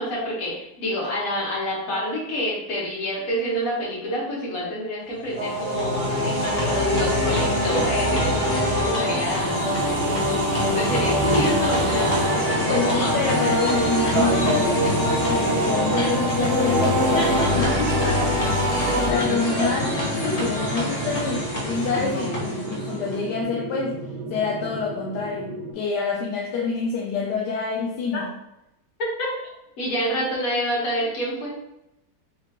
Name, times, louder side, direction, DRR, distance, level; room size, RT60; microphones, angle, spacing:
voice 1, 0.0-9.6 10.7-12.2 12.6-13.1 13.6-14.1 16.0-16.1 17.1-17.5 17.9-18.0 28.1-28.2 29.0-29.3 29.8-31.6, equal, 55° left, -5 dB, 1.6 m, -28 dB
sound 1, 5.2-23.3, left 1 dB, 35° left, 0.6 m, -28 dB
sound 2, 5.4-19.1, equal, 55° right, 0.9 m, -24 dB
sound 3, 9.5-25.7, right 1 dB, 80° right, 1.4 m, -33 dB
voice 2, 12.7-24.0 24.3-28.3, left 5 dB, 80° left, -1 dB, 1.1 m, -27 dB
4.3 x 3.0 x 2.9 m, 0.86 s
omnidirectional pair, 1.8 m